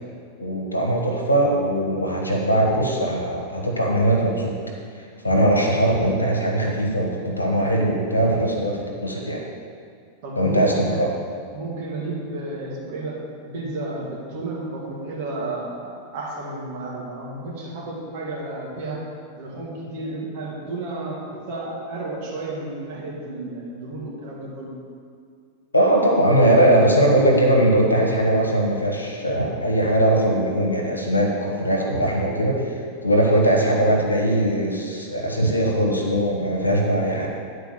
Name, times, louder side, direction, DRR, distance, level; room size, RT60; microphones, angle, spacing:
voice 1, 0.4-4.5 4.9-9.4 10.3-11.1 25.7-37.3, right 1 dB, 80° left, 0 dB, 1.4 m, -20 dB
voice 2, 10.2-11.1 11.5-19.0 19.4-24.7, right 2 dB, 50° right, -4 dB, 2.4 m, -32 dB
10.0 x 4.6 x 6.7 m, 2.2 s
figure-of-eight pair, 90°, 0 cm